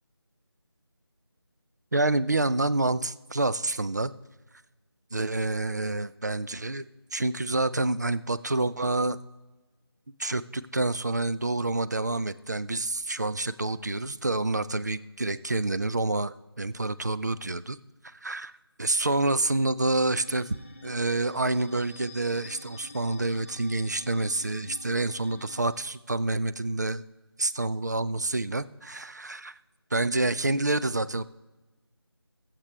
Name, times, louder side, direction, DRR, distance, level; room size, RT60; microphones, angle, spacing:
voice 1, 1.9-4.1 5.1-6.9 7.1-9.2 10.2-17.8 18.0-18.5 18.8-20.6 20.8-27.0 27.4-29.6 29.9-31.2, right 2 dB, 40° right, 15 dB, 0.4 m, -28 dB
sound 1, 19.8-25.7, left 1 dB, 30° left, 0.8 m, -47 dB
21.5 x 7.5 x 3.2 m, 1.2 s
figure-of-eight pair, 170°, 14 cm